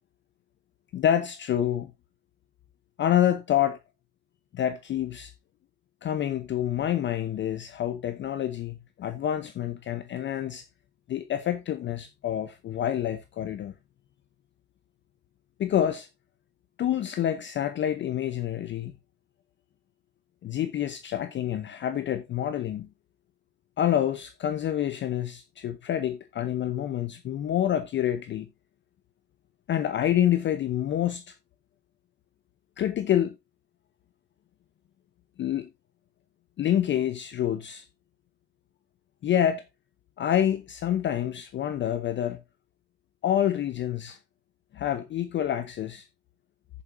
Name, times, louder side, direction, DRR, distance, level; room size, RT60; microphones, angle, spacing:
voice 1, 0.9-1.9 3.0-3.8 4.5-5.3 6.0-10.6 11.1-13.7 15.6-16.1 16.8-18.9 20.4-22.9 23.8-28.5 29.7-31.3 32.8-33.4 35.4-35.7 36.6-37.8 39.2-39.6 40.2-42.4 43.2-44.2 44.7-46.1, left 10 dB, 25° left, 0.7 m, -27 dB
13.5 x 7.1 x 2.6 m
supercardioid pair, 125°, 50 cm